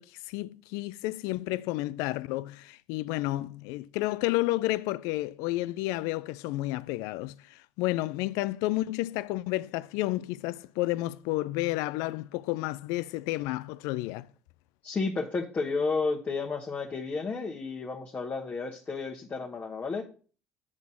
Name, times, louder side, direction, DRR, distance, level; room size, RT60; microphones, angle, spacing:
voice 1, 0.0-14.3, left 18 dB, 70° left, 0.4 m, -31 dB
voice 2, 14.8-20.0, left 4 dB, 30° left, 1.2 m, -32 dB
7.4 x 4.0 x 6.3 m
hypercardioid pair, 65°, 6 cm